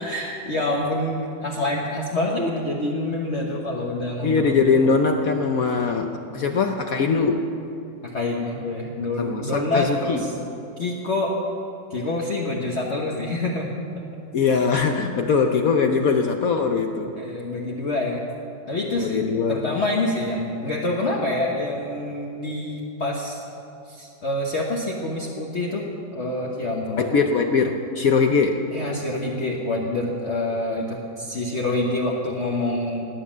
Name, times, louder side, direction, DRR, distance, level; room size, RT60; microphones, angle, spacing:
voice 1, 0.0-4.5 6.3-6.6 8.1-10.3 10.8-11.3 11.9-13.8 15.6-16.1 17.2-18.2 18.7-23.4 23.9-25.8 26.1-27.0 28.7-33.1, left 2 dB, 40° left, -2 dB, 1.4 m, -26 dB
voice 2, 4.2-7.5 9.2-10.3 14.3-17.1 19.0-19.7 27.0-28.6, left 5 dB, 60° left, 5 dB, 1.0 m, -21 dB
17.5 x 9.8 x 7.4 m, 2.8 s
omnidirectional pair, 2.1 m